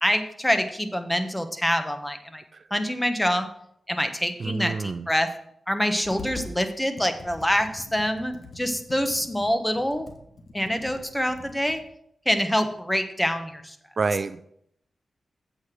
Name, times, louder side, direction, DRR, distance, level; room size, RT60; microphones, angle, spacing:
voice 1, 0.0-2.4 2.7-3.5 3.9-5.3 5.7-10.1 10.5-11.8 12.2-13.8, equal, 10° left, 7 dB, 1.2 m, -25 dB
voice 2, 4.4-5.1 14.0-14.5, right 4 dB, 60° right, 13 dB, 0.4 m, -28 dB
Computer keyboard, 6.0-6.6 7.0-11.9, left 3 dB, 65° left, 1.3 m, -43 dB
8.0 x 5.1 x 6.1 m, 0.71 s
cardioid pair, 50°, 0 cm